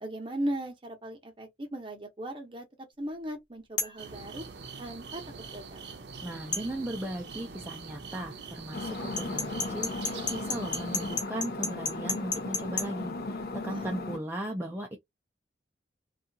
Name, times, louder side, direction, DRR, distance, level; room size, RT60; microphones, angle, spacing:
voice 1, 0.0-2.7 3.0-4.5 4.8-5.2 5.5-5.8 13.7-14.0, right 1 dB, 30° right, 0.8 m, -37 dB
sound 1, 3.8-4.0 6.5-6.7 9.2-12.9, left 4 dB, 25° left, 0.7 m, -31 dB
sound 2, 4.0-11.2, right 5 dB, 70° right, 0.6 m, -44 dB
voice 2, 6.2-15.0, right 1 dB, 15° right, 0.4 m, -37 dB
sound 3, 8.7-14.2, left 2 dB, 60° left, 0.5 m, -36 dB
2.7 x 2.4 x 2.6 m
head